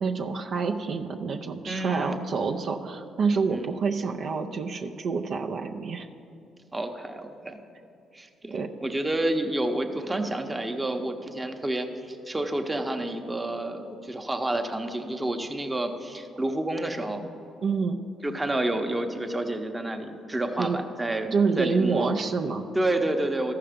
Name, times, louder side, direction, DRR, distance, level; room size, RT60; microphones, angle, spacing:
voice 1, 0.0-6.1 8.5-8.7 17.6-18.0 20.6-20.8 21.3-22.6, right 5 dB, 60° right, 3 dB, 0.5 m, -27 dB
voice 2, 1.7-2.2 3.5-3.7 6.7-7.6 8.1-17.2 18.2-21.3 21.6-22.1 22.7-23.5, right 1 dB, 15° right, 5 dB, 0.8 m, -29 dB
13.5 x 5.7 x 5.1 m, 2.6 s
cardioid pair, 90°, 0 cm